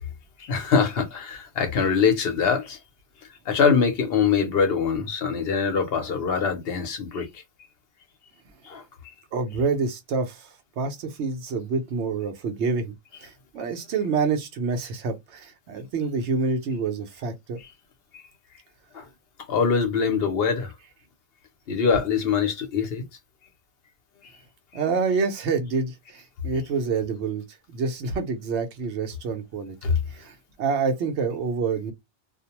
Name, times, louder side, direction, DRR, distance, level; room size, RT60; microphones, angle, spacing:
voice 1, 0.4-2.8 3.5-7.4 8.6-8.8 18.1-18.2 18.9-19.1 19.5-20.7 21.7-23.0 29.8-30.0, left 6 dB, 65° left, 0.9 m, -23 dB
voice 2, 9.3-12.9 13.2-17.6 24.7-29.8 30.1-31.9, right 4 dB, 85° right, 1.0 m, -27 dB
2.4 x 2.1 x 2.8 m
omnidirectional pair, 1.1 m